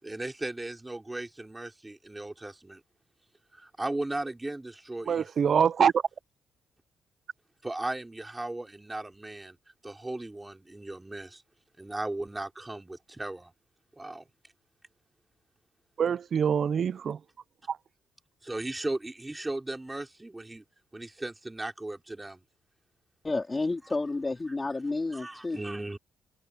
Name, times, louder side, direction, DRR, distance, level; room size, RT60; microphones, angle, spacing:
voice 1, 0.0-2.8 3.5-5.6 7.6-9.6 9.8-11.4 11.8-13.5 14.0-14.3 18.4-20.6 20.9-22.4 25.1-26.0, right 2 dB, 15° right, 5.8 m, -37 dB
voice 2, 5.0-6.0 16.0-17.2 17.7-17.8, right 7 dB, 50° right, 0.8 m, -25 dB
voice 3, 23.2-25.6, left 3 dB, 20° left, 3.5 m, -30 dB
cardioid pair, 90°, 0 cm